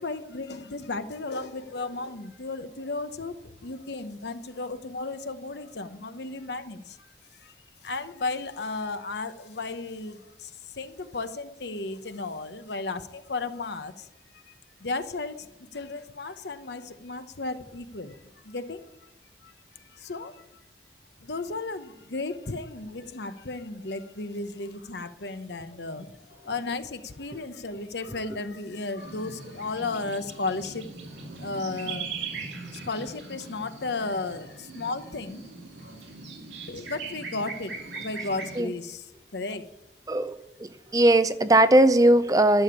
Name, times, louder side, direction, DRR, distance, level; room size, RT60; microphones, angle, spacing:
voice 1, 0.0-7.1 7.4-7.5 7.8-14.1 14.3-14.5 14.8-18.2 18.4-18.9 19.4-19.5 19.8-20.4 21.2-30.9 31.4-32.1 32.7-35.4 35.8-35.9 36.7-39.7, left 3 dB, 75° left, 10 dB, 0.9 m, -34 dB
sound 1, 29.0-38.6, right 4 dB, 85° right, 2.4 m, -40 dB
voice 2, 40.1-42.6, right 1 dB, 20° right, 12 dB, 0.5 m, -20 dB
11.5 x 7.0 x 9.7 m, 0.89 s
head